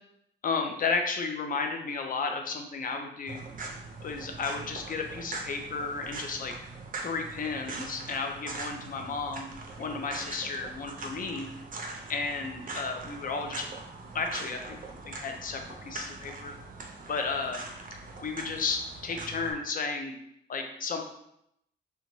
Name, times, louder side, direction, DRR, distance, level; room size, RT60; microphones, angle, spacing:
voice 1, 0.4-3.4 4.0-6.5 7.0-9.5 9.8-11.5 12.1-13.7 14.1-14.8 15.0-16.6 17.1-17.6 18.2-20.1 20.5-21.1, left 4 dB, 45° left, 4 dB, 0.5 m, -33 dB
sound 1, 3.3-19.5, right 3 dB, 45° right, 0.5 m, -42 dB
2.6 x 2.2 x 3.0 m, 0.76 s
cardioid pair, 70°, 20 cm